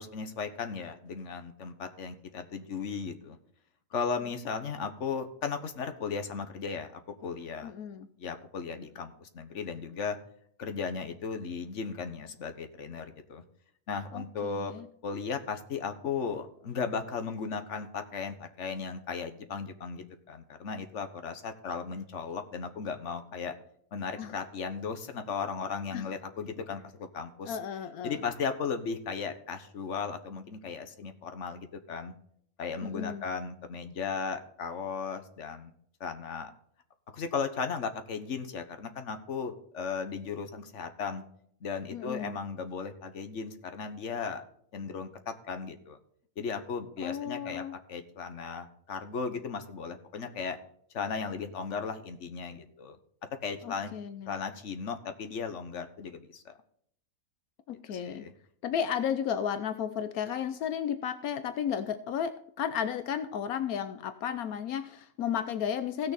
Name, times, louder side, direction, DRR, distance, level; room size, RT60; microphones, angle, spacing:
voice 1, 0.0-3.4 3.9-7.7 8.2-10.2 10.6-13.4 13.9-14.7 15.0-23.5 23.9-27.6 28.0-32.1 32.6-35.7 36.0-36.5 37.1-41.2 41.6-44.4 44.7-46.0 46.4-47.6 47.9-50.6 50.9-53.0 53.4-53.9 54.3-56.5 57.9-58.3, left 5 dB, 55° left, 8 dB, 1.5 m, -36 dB
voice 2, 7.6-8.1 14.1-14.9 24.2-24.3 25.9-26.0 27.4-28.2 32.8-33.2 41.9-42.3 47.0-47.7 53.6-54.4 57.7-58.2 58.6-66.1, left 8 dB, 85° left, 10 dB, 1.2 m, -33 dB
16.5 x 6.7 x 4.1 m, 0.66 s
omnidirectional pair, 1.5 m